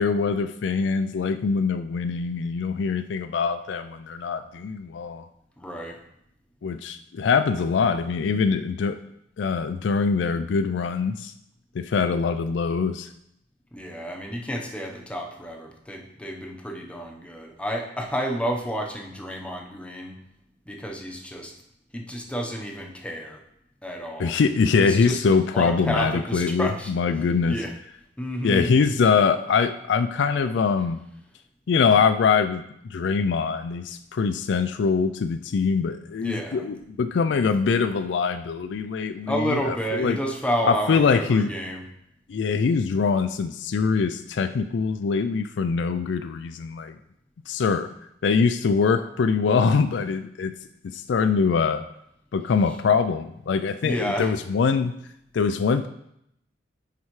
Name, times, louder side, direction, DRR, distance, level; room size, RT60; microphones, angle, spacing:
voice 1, 0.0-5.2 6.6-9.0 9.4-11.3 11.7-13.1 24.2-27.6 28.4-31.0 31.7-40.2 40.6-41.5 42.3-46.9 47.5-47.9 48.2-50.5 50.8-51.8 52.3-55.0 55.3-55.9, left 5 dB, 70° left, 10 dB, 0.4 m, -23 dB
voice 2, 5.6-6.0 13.7-20.2 20.7-21.5 21.9-23.4 23.8-24.3 24.8-26.9 27.5-27.7 28.2-28.7 36.2-36.6 39.3-41.8 53.8-54.3, equal, 5° left, 0 dB, 0.9 m, -30 dB
9.5 x 4.7 x 3.2 m, 0.76 s
head